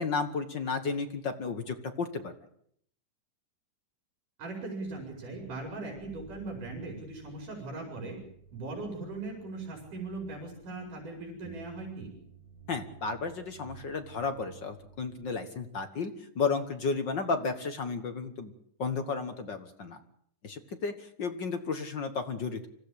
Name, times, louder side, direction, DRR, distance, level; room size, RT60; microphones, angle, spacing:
voice 1, 0.0-2.3 12.7-18.5 18.8-20.0 20.4-22.7, left 4 dB, 50° left, 7 dB, 1.5 m, -33 dB
voice 2, 4.4-8.2 8.5-12.1, right 3 dB, 90° right, 1 dB, 6.6 m, -39 dB
sound 1, 4.8-15.3, right 5 dB, 70° right, 6.0 m, -54 dB
25.5 x 15.5 x 8.6 m, 0.67 s
omnidirectional pair, 3.6 m